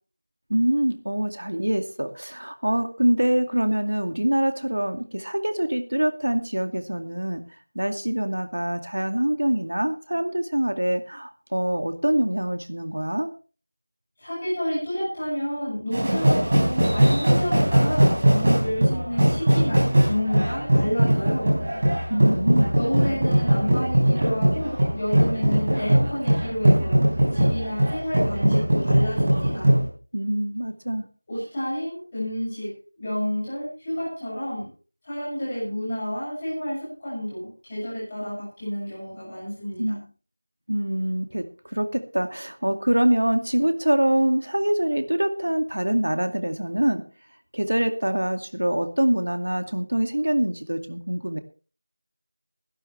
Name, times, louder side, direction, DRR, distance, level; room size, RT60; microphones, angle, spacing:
voice 1, 0.5-7.4 7.8-13.3 22.1-22.8 30.1-31.0 39.8-40.0 40.7-47.0 47.5-51.4, right 1 dB, 75° right, 8 dB, 2.3 m, -24 dB
voice 2, 14.2-21.5 22.7-27.0 27.3-29.7 31.3-34.7 35.0-39.8, equal, 10° left, -8 dB, 6.6 m, -30 dB
sound 1, 15.9-29.9, right 1 dB, 15° right, 4.1 m, -20 dB
20.5 x 12.0 x 3.3 m, 0.37 s
figure-of-eight pair, 180°, 0 cm